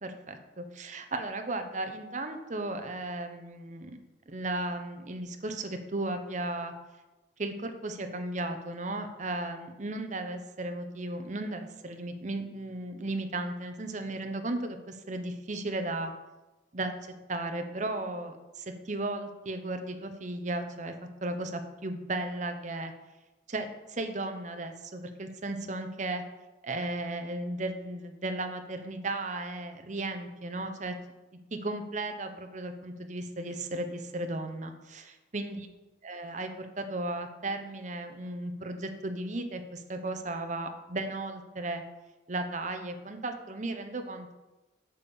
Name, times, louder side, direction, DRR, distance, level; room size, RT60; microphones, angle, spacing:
voice 1, 0.0-4.0 4.3-6.7 7.4-16.1 16.7-16.9 17.3-20.9 21.2-22.9 23.5-26.2 26.6-30.9 31.5-35.7 36.0-41.8 42.3-44.3, right 2 dB, 45° right, 7 dB, 0.9 m, -35 dB
8.9 x 5.5 x 7.1 m, 1.1 s
head